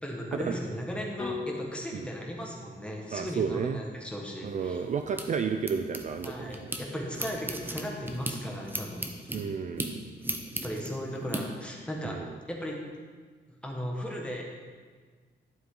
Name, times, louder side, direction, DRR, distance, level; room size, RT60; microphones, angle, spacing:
voice 1, 0.0-4.8 6.2-9.1 10.6-12.2 12.5-12.8 13.6-14.4, equal, 5° left, -1 dB, 1.4 m, -36 dB
sound 1, 1.2-5.3, left 4 dB, 25° left, 0.9 m, -43 dB
voice 2, 3.1-3.8 4.4-6.7 9.3-10.1 12.0-12.3, right 6 dB, 40° right, 7 dB, 0.4 m, -32 dB
sound 2, 4.5-6.8 7.1-11.4, right 1 dB, 10° right, 0.7 m, -37 dB
11.5 x 7.3 x 3.8 m, 1.5 s
wide cardioid pair, 160°, 19 cm